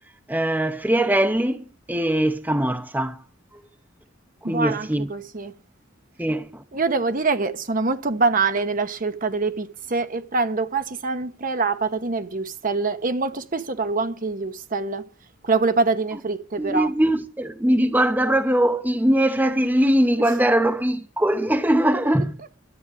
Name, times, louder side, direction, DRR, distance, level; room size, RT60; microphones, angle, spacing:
voice 1, 0.3-3.2 4.4-5.1 6.2-6.6 16.6-22.4, right 1 dB, 10° right, 0.8 m, -21 dB
voice 2, 4.4-5.5 6.7-15.1 15.4-16.9 20.2-20.4 22.4-22.5, right 4 dB, 45° right, 1.0 m, -25 dB
12.5 x 8.1 x 9.8 m
head